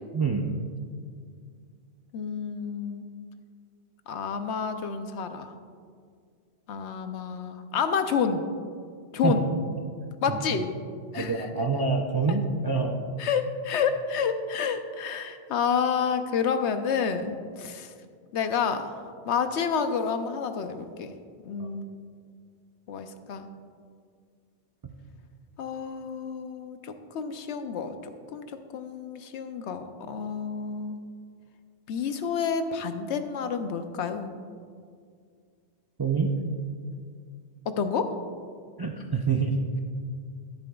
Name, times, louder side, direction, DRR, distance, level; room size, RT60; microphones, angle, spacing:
voice 1, 0.1-0.5 9.2-9.4 11.1-13.0 21.6-21.7 36.0-36.3 38.8-39.8, right 4 dB, 40° right, 2 dB, 0.3 m, -26 dB
voice 2, 2.1-3.1 4.1-5.5 6.7-8.4 9.1-9.5 10.2-10.7 11.1-11.5 13.2-17.9 18.3-21.1 21.4-21.9 22.9-23.5 25.6-28.5 28.7-31.0 31.9-34.3 37.7-38.1, left 6 dB, 75° left, 8 dB, 0.9 m, -29 dB
12.0 x 10.5 x 2.3 m, 2.2 s
omnidirectional pair, 1.2 m